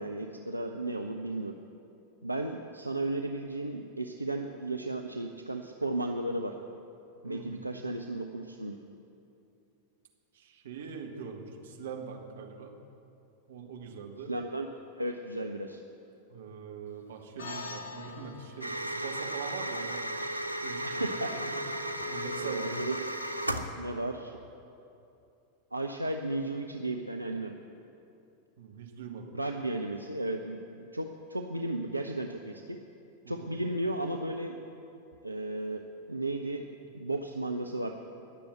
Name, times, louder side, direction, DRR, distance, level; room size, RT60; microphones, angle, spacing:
voice 1, 0.0-1.5 2.2-6.6 7.2-8.8 14.3-14.7 15.0-15.8 20.8-21.3 22.4-23.1 23.8-24.4 25.7-27.6 29.3-32.8 33.3-34.6 35.2-35.8 36.1-36.7 36.9-37.9, right 2 dB, 85° right, 3 dB, 0.6 m, -34 dB
voice 2, 7.2-7.6 10.3-12.8 13.5-14.3 16.3-20.1 20.6-21.6 22.1-22.8 28.6-29.3 33.2-33.5, right 6 dB, 60° right, 2 dB, 1.7 m, -43 dB
sound 1, 17.4-22.0, left 3 dB, 65° left, 1.0 m, -47 dB
sound 2, 18.6-23.7, right 1 dB, 90° left, 0.9 m, -35 dB
20.0 x 7.0 x 7.7 m, 2.7 s
figure-of-eight pair, 90°, 0 cm